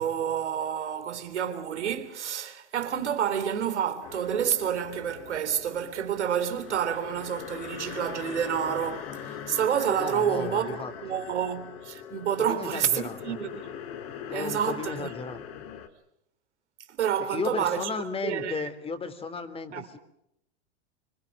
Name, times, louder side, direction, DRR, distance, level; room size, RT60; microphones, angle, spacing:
voice 1, 0.0-10.7 11.0-13.7 14.3-15.1 17.0-17.9 18.2-18.7 19.7-19.9, right 8 dB, 90° right, 3.4 m, -29 dB
sound 1, 4.0-15.9, left 8 dB, 60° left, 3.3 m, -41 dB
voice 2, 10.0-10.9 12.4-13.4 14.3-15.4 17.3-20.0, left 4 dB, 15° left, 3.1 m, -34 dB
26.0 x 25.5 x 6.4 m
hypercardioid pair, 125°, 34 cm